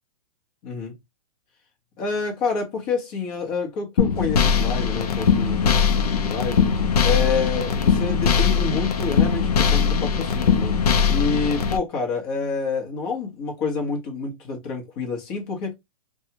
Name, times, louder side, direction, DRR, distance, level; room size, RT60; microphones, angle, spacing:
voice 1, 0.6-1.0 2.0-6.7 7.0-10.7 11.1-15.7, left 4 dB, 30° left, 1.1 m, -28 dB
sound 1, 4.0-11.8, left 6 dB, 75° left, 0.7 m, -20 dB
2.7 x 2.4 x 2.8 m
hypercardioid pair, 150°, 20 cm